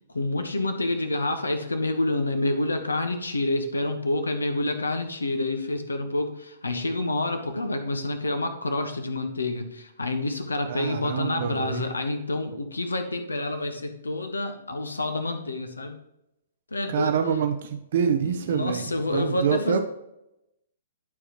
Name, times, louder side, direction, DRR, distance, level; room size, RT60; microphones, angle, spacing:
voice 1, 0.1-16.0 16.7-17.2 18.2-19.8, left 2 dB, 75° left, 7 dB, 1.2 m, -28 dB
voice 2, 10.7-11.8 16.9-18.8 19.1-19.8, right 7 dB, 50° right, 7 dB, 0.7 m, -26 dB
12.0 x 4.8 x 3.0 m, 0.86 s
figure-of-eight pair, 120°, 0 cm